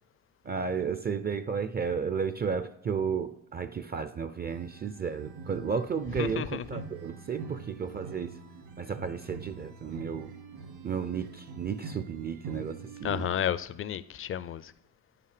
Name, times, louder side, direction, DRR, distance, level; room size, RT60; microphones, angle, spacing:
voice 1, 0.4-8.3 8.8-10.3 10.8-13.3, right 6 dB, 25° right, 0.4 m, -33 dB
sound 1, 4.5-13.3, right 4 dB, 75° right, 1.8 m, -45 dB
voice 2, 6.2-6.8 13.0-14.7, left 10 dB, 35° left, 0.4 m, -32 dB
9.5 x 5.8 x 4.9 m
supercardioid pair, 80°, 39 cm